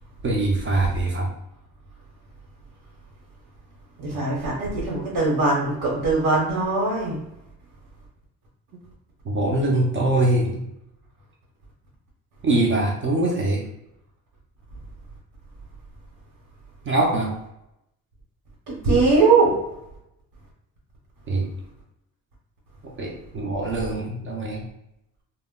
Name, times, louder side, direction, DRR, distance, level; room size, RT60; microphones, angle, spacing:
voice 1, 0.2-1.3 9.2-10.6 12.4-13.6 16.8-17.3 21.3-21.5 22.8-24.7, right 2 dB, 35° right, -2 dB, 0.4 m, -23 dB
voice 2, 4.0-7.2 18.7-19.5, right 3 dB, 70° right, -5 dB, 1.0 m, -21 dB
2.1 x 2.0 x 3.5 m, 0.85 s
cardioid pair, 160°, 38 cm